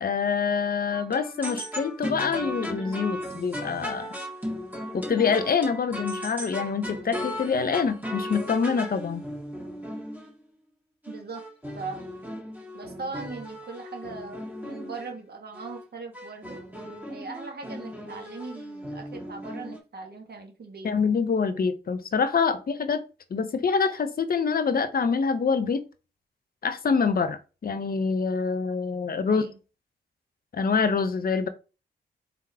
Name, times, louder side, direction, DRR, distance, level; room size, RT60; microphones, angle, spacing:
voice 1, 0.0-4.1 4.9-9.2 20.8-23.0 23.3-25.8 26.6-29.5 30.5-31.5, left 5 dB, 50° left, 0.8 m, -25 dB
Mr. Beacon, 0.9-10.4 11.0-15.1 15.5-15.9 16.1-19.8, equal, 10° right, 1.8 m, -36 dB
voice 2, 11.1-11.4 11.7-12.0 12.7-16.6 17.1-21.2 29.2-29.6, right 4 dB, 55° right, 1.4 m, -40 dB
4.0 x 3.7 x 2.8 m
supercardioid pair, 45°, 19 cm